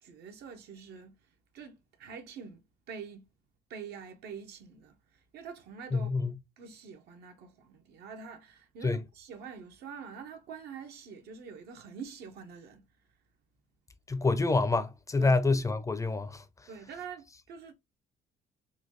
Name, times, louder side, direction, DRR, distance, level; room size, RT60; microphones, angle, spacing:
voice 1, 0.0-1.1 1.5-2.6 2.9-3.2 3.7-5.0 5.3-6.1 6.6-12.8 15.2-15.3 16.7-17.7, right 6 dB, 75° right, 0.9 m, -45 dB
voice 2, 5.9-6.4 8.8-9.0 14.1-16.4, left 3 dB, 20° left, 0.4 m, -27 dB
3.9 x 2.2 x 3.0 m
cardioid pair, 110°, 17 cm